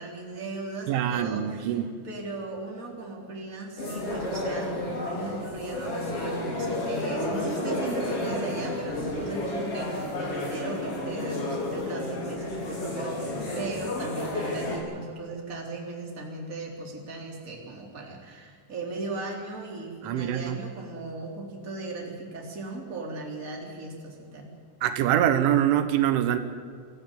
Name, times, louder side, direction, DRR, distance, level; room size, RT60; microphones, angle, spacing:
voice 1, 0.0-24.5, right 3 dB, 20° right, 0 dB, 3.6 m, -37 dB
voice 2, 0.9-2.0 20.0-20.6 24.8-26.4, right 11 dB, 85° right, 9 dB, 3.6 m, -24 dB
sound 1, 3.8-14.8, left 1 dB, 30° left, 4.5 m, -31 dB
25.5 x 14.5 x 9.3 m, 2.1 s
omnidirectional pair, 5.4 m